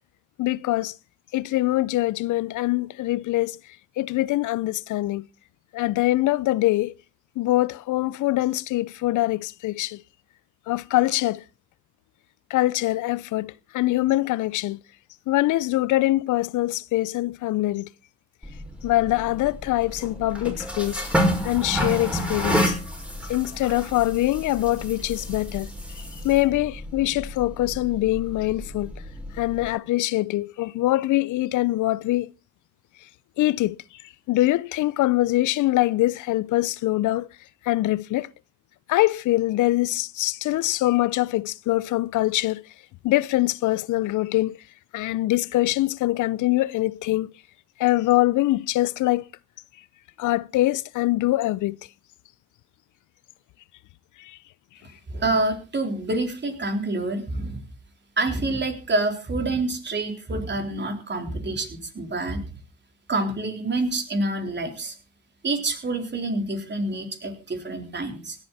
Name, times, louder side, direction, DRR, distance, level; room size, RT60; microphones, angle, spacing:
voice 1, 0.4-0.9 1.3-3.6 4.0-5.3 5.7-6.9 7.4-10.0 10.7-11.4 12.5-14.8 15.3-17.9 18.8-21.0 21.4-22.8 23.3-25.7 26.0-28.9 29.3-32.3 33.4-34.0 34.3-37.3 37.6-38.3 38.9-42.6 43.0-44.6 44.9-47.3 47.8-49.3 50.2-51.8 54.2-54.4, left 17 dB, 80° left, 0.6 m, -23 dB
sound 1, 18.4-29.7, equal, 5° right, 5.8 m, -30 dB
voice 2, 55.1-57.6 58.2-62.4 63.1-64.9 65.4-68.4, right 2 dB, 35° right, 3.9 m, -27 dB
17.0 x 12.5 x 4.2 m
cardioid pair, 90°, 30 cm